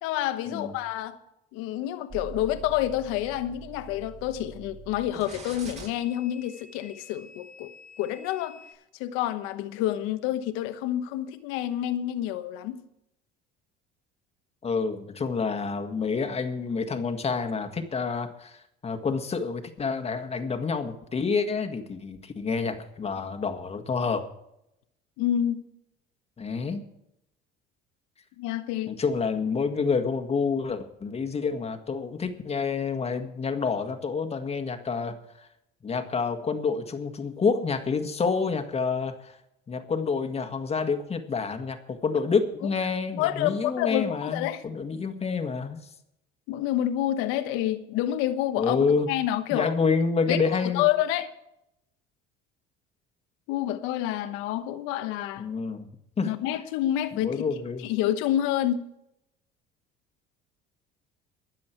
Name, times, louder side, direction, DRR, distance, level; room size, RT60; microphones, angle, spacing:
voice 1, 0.0-1.2 1.5-7.7 8.0-8.6 9.0-12.8 25.2-25.6 28.4-28.9 43.2-44.6 46.5-49.7 50.3-50.4 50.6-51.3 53.5-55.5 56.2-57.4 57.8-58.9, left 12 dB, 80° left, 1.2 m, -28 dB
sound 1, 2.1-8.7, right 3 dB, 35° right, 6.7 m, -45 dB
voice 2, 14.6-24.3 26.4-26.8 28.9-35.2 35.8-39.4 39.7-45.8 48.6-49.1 49.5-50.9 55.4-55.9 56.2-56.3 57.1-57.9, left 5 dB, 30° left, 1.7 m, -28 dB
22.5 x 7.7 x 4.6 m
supercardioid pair, 100°, 21 cm